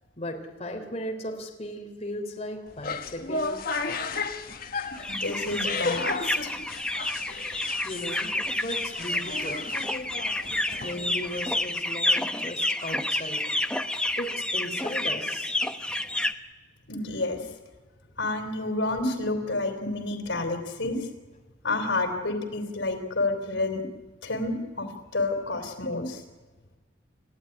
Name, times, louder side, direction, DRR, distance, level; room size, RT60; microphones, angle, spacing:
voice 1, 0.2-3.6 7.8-9.6 10.8-13.4 14.2-15.5, left 1 dB, 35° left, 2 dB, 3.8 m, -36 dB
sound 1, 2.7-11.7, left 3 dB, 50° left, 1.4 m, -34 dB
sound 2, 5.0-16.3, left 1 dB, 5° left, 0.9 m, -29 dB
voice 2, 5.1-6.5 16.9-17.5 18.2-21.1 21.6-23.8 24.2-26.2, left 2 dB, 90° left, 6 dB, 3.7 m, -29 dB
30.0 x 14.5 x 10.0 m, 1.3 s
head